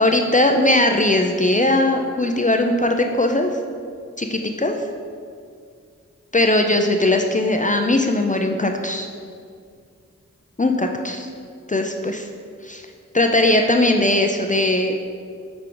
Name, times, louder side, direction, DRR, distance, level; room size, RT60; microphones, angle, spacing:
voice 1, 0.0-3.5 4.2-4.7 6.3-9.1 10.6-11.3 11.7-12.3 12.6-12.8 13.1-14.9, left 1 dB, 25° left, 4 dB, 0.4 m, -19 dB
6.8 x 4.7 x 3.8 m, 2.2 s
wide cardioid pair, 55°, 30 cm